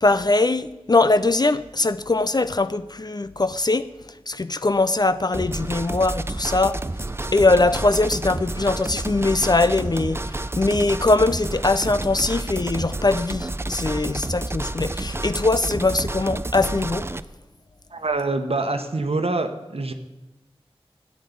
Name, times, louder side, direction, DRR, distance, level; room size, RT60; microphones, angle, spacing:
voice 1, 0.0-3.9 4.3-6.8 7.3-17.1, left 2 dB, 40° left, 0.5 m, -21 dB
sound 1, 5.3-17.2, right 2 dB, 25° right, 0.5 m, -30 dB
voice 2, 17.9-19.9, right 2 dB, 70° right, 1.0 m, -25 dB
11.0 x 8.6 x 9.4 m
wide cardioid pair, 45°, 10 cm